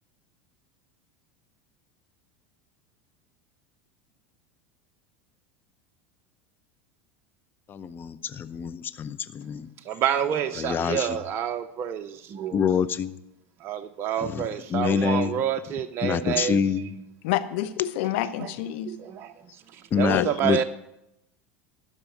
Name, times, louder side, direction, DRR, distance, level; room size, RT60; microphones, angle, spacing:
voice 1, 7.7-9.7 10.6-11.2 12.5-13.2 14.2-15.4 16.0-16.9 19.9-20.6, left 7 dB, 30° left, 14 dB, 0.6 m, -26 dB
voice 2, 9.9-12.6 13.6-16.9 18.4-18.5 18.9-19.3 19.7-20.6, right 9 dB, 40° right, 9 dB, 0.6 m, -28 dB
voice 3, 17.2-18.9 20.1-20.4, left 13 dB, 70° left, 12 dB, 0.9 m, -28 dB
12.5 x 5.5 x 9.1 m, 0.86 s
hypercardioid pair, 100°, 7 cm